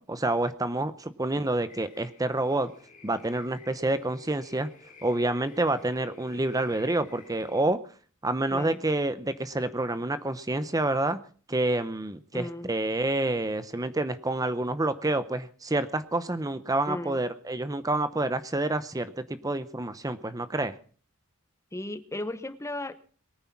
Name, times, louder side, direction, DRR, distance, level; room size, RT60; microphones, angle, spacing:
voice 1, 0.0-2.7 3.0-4.7 5.0-7.8 8.2-11.2 11.5-20.8, right 2 dB, 15° right, 13 dB, 0.7 m, -28 dB
sound 1, 1.7-7.6, left 2 dB, 35° left, 2.9 m, -52 dB
voice 2, 8.5-8.8 12.3-12.7 16.9-17.2 21.7-23.0, left 1 dB, 15° left, 13 dB, 0.9 m, -35 dB
21.5 x 9.7 x 5.9 m, 0.42 s
head